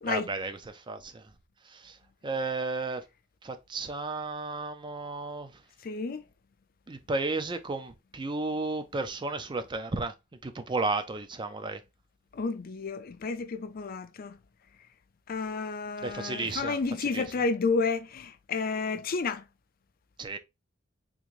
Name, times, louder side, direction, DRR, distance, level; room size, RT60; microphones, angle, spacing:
voice 1, 0.0-1.3 1.7-2.0 2.2-3.1 3.4-5.5 6.9-10.1 10.4-11.8 16.0-17.2 20.2-20.4, right 3 dB, 25° right, 0.4 m, -33 dB
voice 2, 5.8-6.2 12.3-14.4 15.3-19.4, left 4 dB, 50° left, 0.4 m, -31 dB
3.7 x 2.6 x 3.0 m
head